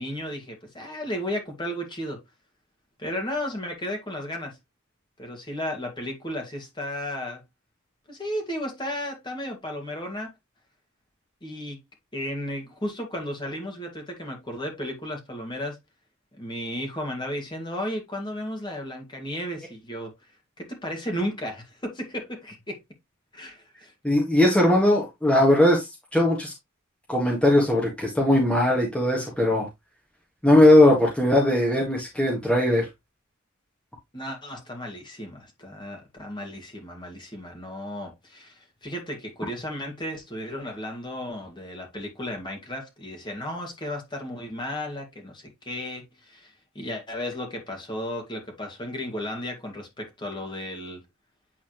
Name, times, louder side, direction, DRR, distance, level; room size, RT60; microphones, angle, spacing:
voice 1, 0.0-2.2 3.0-4.6 5.2-7.4 8.1-10.3 11.4-11.8 12.1-15.8 16.3-20.1 20.6-22.8 23.3-23.9 34.1-51.0, left 1 dB, 20° left, 2.1 m, -34 dB
voice 2, 24.0-26.5 27.1-29.7 30.4-32.9, left 1 dB, 5° left, 1.7 m, -19 dB
8.9 x 4.1 x 3.1 m
head